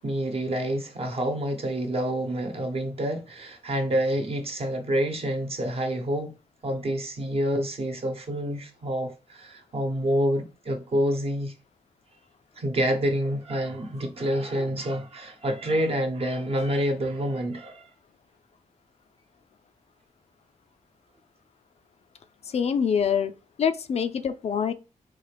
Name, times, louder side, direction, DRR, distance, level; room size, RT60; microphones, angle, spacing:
voice 1, 0.0-6.4 6.6-11.5 12.6-17.9, equal, 50° right, 0.9 m, -28 dB
voice 2, 22.5-24.7, left 7 dB, 55° left, 0.4 m, -25 dB
3.9 x 2.4 x 3.3 m
cardioid pair, 70°, 13 cm